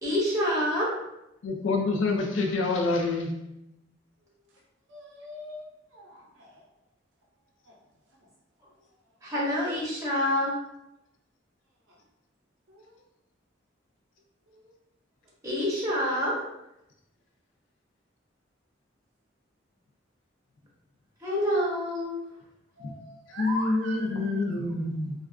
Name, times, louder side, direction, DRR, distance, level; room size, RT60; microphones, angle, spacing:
voice 1, 0.0-0.9 9.2-10.5 15.4-16.4 21.2-22.2, equal, 15° right, -6 dB, 0.7 m, -27 dB
voice 2, 1.4-3.3 22.8-22.9 23.4-25.1, left 3 dB, 80° left, 1 dB, 0.4 m, -27 dB
voice 3, 4.9-5.6 5.9-6.6 7.7-7.8 11.9-12.0 12.7-12.9 14.5-14.7 22.8-24.6, left 1 dB, 80° right, -2 dB, 0.6 m, -40 dB
2.4 x 2.3 x 2.3 m, 0.85 s
head